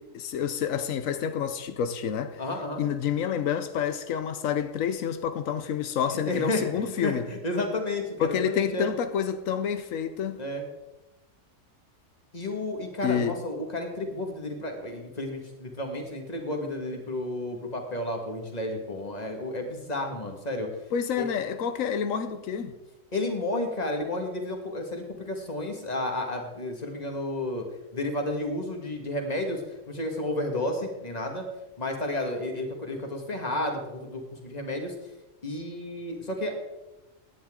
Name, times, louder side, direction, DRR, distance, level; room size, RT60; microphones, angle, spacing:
voice 1, 0.0-2.4 2.8-7.2 8.2-10.4 13.0-13.4 20.9-22.8, left 8 dB, 90° left, 1.2 m, -28 dB
voice 2, 2.4-2.8 6.1-6.6 7.0-8.9 10.4-10.6 12.3-20.7 21.2-21.3 23.1-27.7 27.9-31.4 31.8-34.9 35.4-36.5, left 1 dB, 30° left, 1.9 m, -32 dB
16.5 x 10.0 x 3.7 m
omnidirectional pair, 1.3 m